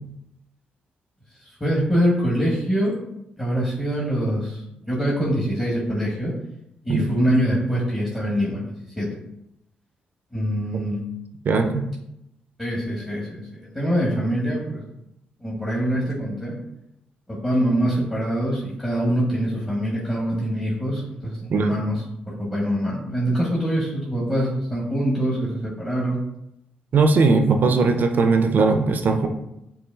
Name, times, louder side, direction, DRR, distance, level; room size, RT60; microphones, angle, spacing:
voice 1, 1.6-3.0 3.4-6.3 6.8-9.1 10.3-11.0 12.6-14.8 15.4-16.5 17.3-26.2, equal, 20° left, -6 dB, 1.3 m, -24 dB
voice 2, 11.4-11.9 21.5-21.8 26.9-29.3, right 4 dB, 55° right, 6 dB, 0.4 m, -19 dB
6.6 x 2.3 x 2.3 m, 0.82 s
supercardioid pair, 50°, 4 cm